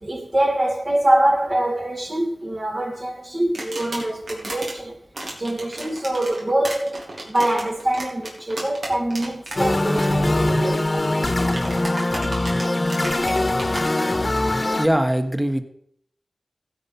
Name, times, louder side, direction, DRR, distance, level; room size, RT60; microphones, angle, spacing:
voice 1, 0.0-5.0 5.4-11.1, right 1 dB, 40° right, 2.2 m, -24 dB
sound 1, 3.5-4.7 5.1-9.6 9.8-10.1 11.5-13.8, right 1 dB, 75° right, 3.1 m, -33 dB
sound 2, 9.6-14.9, left 1 dB, 35° left, 1.2 m, -22 dB
voice 2, 11.2-11.6 14.8-15.6, equal, 10° right, 1.3 m, -22 dB
15.5 x 5.5 x 5.8 m
wide cardioid pair, 55°, 0 cm